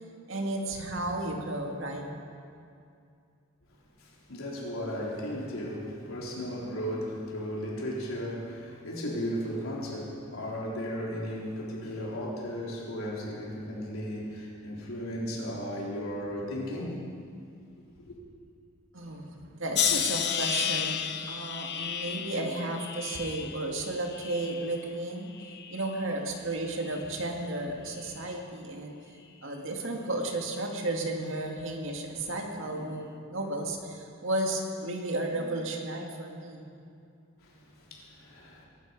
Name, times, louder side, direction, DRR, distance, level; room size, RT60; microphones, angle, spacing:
voice 1, 0.3-2.1 18.9-21.0 21.3-25.3 25.7-28.9 29.4-36.6, right 2 dB, 65° right, 2 dB, 2.2 m, -33 dB
voice 2, 4.0-17.1 18.0-18.1 37.4-38.7, equal, 85° left, -3 dB, 3.8 m, -35 dB
sound 1, 19.7-24.9 25.3-26.0 26.8-27.1, left 9 dB, 55° left, 0.8 m, -33 dB
22.0 x 12.5 x 5.3 m, 2.4 s
head